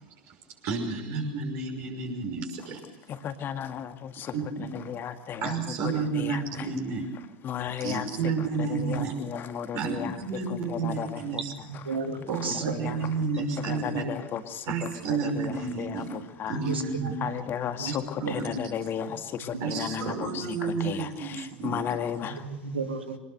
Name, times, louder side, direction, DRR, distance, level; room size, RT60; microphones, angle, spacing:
voice 1, 0.6-2.8 4.3-4.7 5.4-7.1 7.6-9.2 9.7-11.5 12.3-14.0 14.7-16.2 16.5-17.2 17.9-18.9 19.6-21.9, right 4 dB, 50° right, 2 dB, 5.9 m, -31 dB
voice 2, 3.2-4.3 4.9-5.5 6.2-6.4 7.4-8.0 8.7-10.1 10.7-11.1 11.3-11.4 12.5-12.9 13.7-14.7 15.4-15.5 15.8-15.9 16.4-16.5 17.2-17.9 18.3-20.3 20.8-21.1 21.6-22.4, left 9 dB, 35° left, 8 dB, 2.0 m, -33 dB
voice 3, 11.7-12.6 14.0-14.1 16.6-17.3 17.8-17.9 18.3-18.4 19.5-19.6 22.2-23.2, right 5 dB, 80° right, 5 dB, 2.6 m, -33 dB
25.0 x 20.0 x 6.6 m, 0.96 s
figure-of-eight pair, 75°, 6 cm